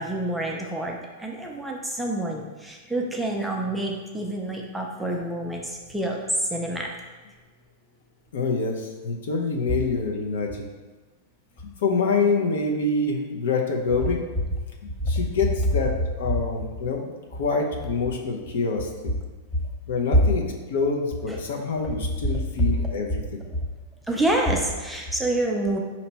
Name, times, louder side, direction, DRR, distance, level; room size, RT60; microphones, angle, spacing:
voice 1, 0.0-6.9 15.0-15.1 21.3-21.4 22.3-22.4 22.8-22.9 24.1-25.8, right 1 dB, ahead, -1 dB, 0.4 m, -27 dB
voice 2, 8.3-10.7 11.8-14.2 15.1-17.1 17.4-19.1 19.9-23.4, left 4 dB, 75° left, 1 dB, 0.8 m, -26 dB
4.5 x 2.9 x 4.1 m, 1.3 s
supercardioid pair, 160°, 0 cm